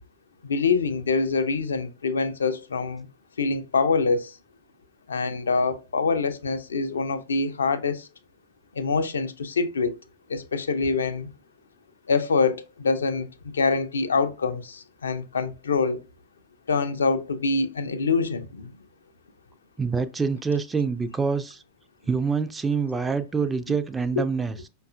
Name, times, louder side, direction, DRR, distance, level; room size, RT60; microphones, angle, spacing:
voice 1, 0.4-3.1 3.4-4.3 5.1-8.1 8.8-10.0 10.3-11.3 12.1-13.3 13.5-16.0 16.7-18.7 24.2-24.3, left 4 dB, 70° left, 0.4 m, -25 dB
voice 2, 19.8-21.6 22.1-24.7, right 5 dB, 15° right, 0.3 m, -26 dB
5.2 x 2.3 x 2.4 m
figure-of-eight pair, 90°, 0 cm